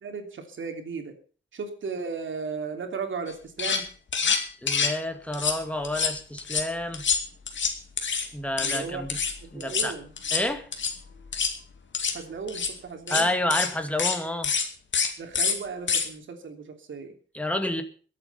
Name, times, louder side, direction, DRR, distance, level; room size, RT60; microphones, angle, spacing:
voice 1, 0.0-1.2 1.5-3.9 8.6-9.0 9.4-10.1 12.1-13.3 15.2-17.2, right 5 dB, 75° right, 6 dB, 3.1 m, -36 dB
sound 1, 3.3-3.4 3.6-3.8 4.1-5.0 5.3-5.6 5.8-6.6 6.9-8.3 8.6-8.8 9.1-9.3 9.6-9.9 10.2-10.4 10.7-10.9 11.3-11.5 11.9-12.2 12.5-12.7 13.1-13.2 13.5-13.7 14.0-14.2 14.4-14.7 14.9-15.1 15.3-15.5 15.9-16.1, left 6 dB, 70° left, 2.4 m, -26 dB
voice 2, 4.6-7.0 8.3-9.2 9.5-10.0 10.3-10.7 13.1-14.5 17.3-17.8, left 1 dB, 5° left, 6 dB, 2.4 m, -29 dB
22.0 x 8.6 x 5.7 m, 0.40 s
cardioid pair, 85°, 20 cm